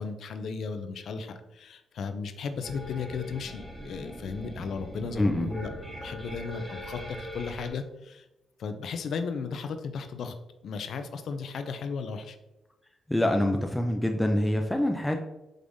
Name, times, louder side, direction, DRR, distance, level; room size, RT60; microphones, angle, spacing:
voice 1, 0.0-5.7 6.0-8.3 8.6-10.4 10.6-12.4, left 5 dB, 70° left, 9 dB, 0.4 m, -35 dB
sound 1, 2.6-7.7, equal, 10° right, 1.0 m, -41 dB
voice 2, 5.2-5.5 13.1-15.2, left 1 dB, 10° left, 3 dB, 0.4 m, -25 dB
5.0 x 3.3 x 2.6 m, 0.96 s
supercardioid pair, 65°, 0 cm